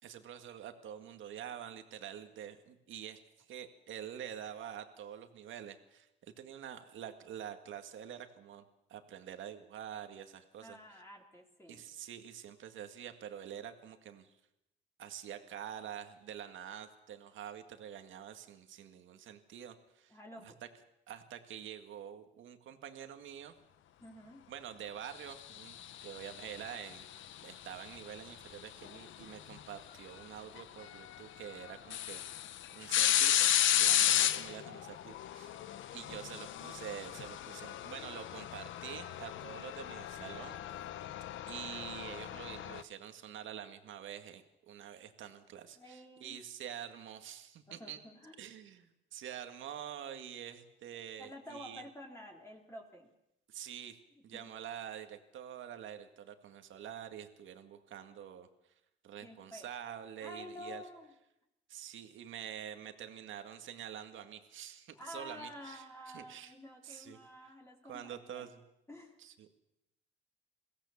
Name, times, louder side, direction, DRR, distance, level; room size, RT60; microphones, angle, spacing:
voice 1, 0.0-3.2 3.5-6.1 6.4-8.6 8.9-10.8 11.7-14.3 15.0-20.5 21.1-23.5 24.5-27.0 27.4-32.4 32.7-35.6 35.9-40.6 41.5-48.0 48.4-51.8 53.5-54.0 54.2-58.5 59.0-60.8 61.7-65.8 66.1-66.5 66.8-67.2 67.9-68.6 69.2-69.6, right 9 dB, 75° right, 7 dB, 2.0 m, -47 dB
voice 2, 10.6-11.8 20.1-20.6 24.0-24.4 45.8-46.4 47.7-48.4 51.2-53.1 54.3-54.5 59.2-59.7 60.2-61.1 65.0-68.5 68.9-69.2, left 1 dB, 15° left, -1 dB, 3.6 m, -50 dB
sound 1, 25.6-27.0 28.9-29.0 30.6-30.7 31.1-31.2 31.7-42.8, left 11 dB, 75° left, 0.9 m, -33 dB
22.5 x 16.5 x 7.2 m, 0.86 s
cardioid pair, 90°, 20 cm